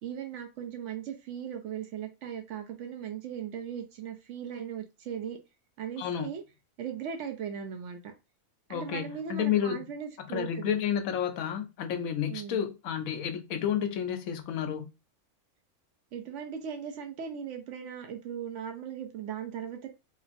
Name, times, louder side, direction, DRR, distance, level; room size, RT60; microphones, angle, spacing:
voice 1, 0.0-5.4 5.8-6.4 6.8-8.1 8.7-10.7 12.3-12.7 16.1-19.9, right 8 dB, 65° right, 0.8 m, -38 dB
voice 2, 6.0-6.3 8.7-9.8 10.3-14.9, left 9 dB, 75° left, 1.0 m, -30 dB
2.9 x 2.5 x 2.5 m
omnidirectional pair, 1.5 m